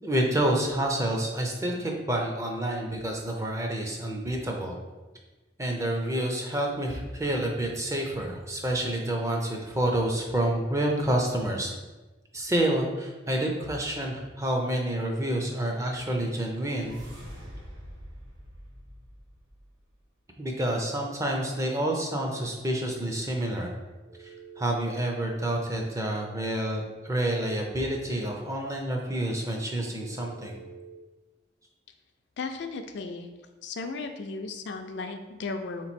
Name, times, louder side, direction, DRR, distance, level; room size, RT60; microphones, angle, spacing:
voice 1, 0.0-4.8 5.6-11.7 12.3-17.0 20.4-23.7 24.2-30.6, right 1 dB, 15° right, 1 dB, 0.5 m, -28 dB
sound 1, 16.0-20.0, equal, 85° right, 1.3 m, -46 dB
Telephone, 24.0-25.1 27.0-28.0 29.9-31.0, right 6 dB, 40° right, 1.1 m, -47 dB
voice 2, 32.4-33.3 33.6-35.9, left 3 dB, 65° left, 6 dB, 0.4 m, -35 dB
3.7 x 3.0 x 4.2 m, 1.2 s
head